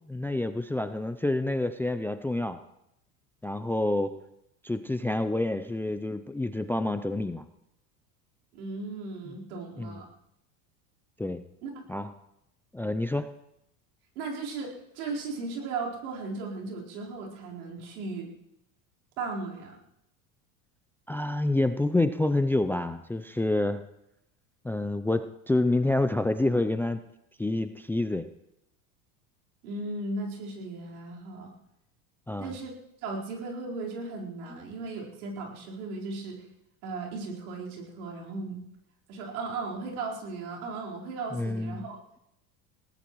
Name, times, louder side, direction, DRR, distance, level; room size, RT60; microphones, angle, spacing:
voice 1, 0.1-2.6 3.4-4.1 4.6-7.4 9.8-10.0 11.2-11.4 11.9-12.1 12.7-13.3 21.1-23.8 24.6-27.0 27.4-28.3 32.3-32.5 34.5-34.6 41.3-41.8, left 2 dB, 5° left, 10 dB, 0.4 m, -28 dB
voice 2, 8.5-10.0 11.6-11.9 14.1-18.3 19.2-19.8 29.6-31.5 32.4-32.7 33.0-36.4 36.8-38.6 39.1-42.2, right 3 dB, 80° right, -3 dB, 4.5 m, -36 dB
21.5 x 18.0 x 3.1 m, 0.82 s
hypercardioid pair, 100°, 43 cm